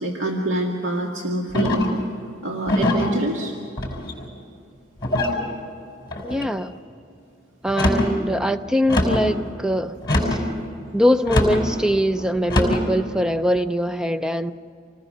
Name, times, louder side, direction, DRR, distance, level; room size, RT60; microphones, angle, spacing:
voice 1, 0.0-1.9 2.4-3.6, right 1 dB, 85° right, 0 dB, 1.9 m, -25 dB
sound 1, 1.5-2.0 2.7-3.1 3.8-4.3 5.0-5.4 6.1-6.5 7.6-8.1 8.9-9.3 10.0-10.5 11.3-11.6 12.5-12.9, left 1 dB, 20° left, 5.0 m, -22 dB
voice 2, 6.2-6.8 7.6-10.4 10.9-14.5, equal, 5° right, 11 dB, 0.5 m, -22 dB
27.0 x 19.5 x 6.6 m, 2.6 s
head